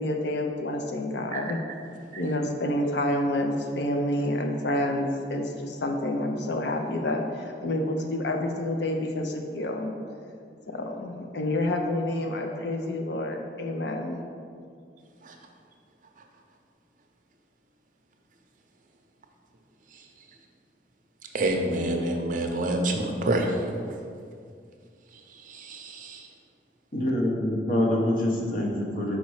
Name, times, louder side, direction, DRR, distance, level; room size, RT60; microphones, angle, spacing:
voice 1, 0.0-1.6 2.2-9.9 10.7-14.2, left 1 dB, 70° left, 3 dB, 0.6 m, -28 dB
voice 2, 21.3-23.5 25.6-26.2, right 1 dB, 50° right, 3 dB, 0.6 m, -27 dB
voice 3, 26.9-29.2, left 1 dB, 50° left, -1 dB, 0.9 m, -25 dB
5.1 x 4.1 x 4.8 m, 2.2 s
head